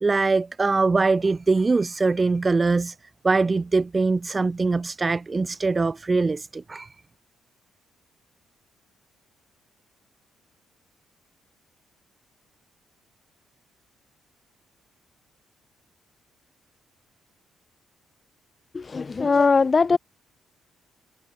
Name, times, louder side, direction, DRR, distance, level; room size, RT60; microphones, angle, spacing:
voice 1, 0.0-2.9 3.2-6.9, right 3 dB, 25° right, 1.4 m, -22 dB
voice 2, 18.7-20.0, left 4 dB, 30° left, 0.6 m, -20 dB
cardioid pair, 90°, 0 cm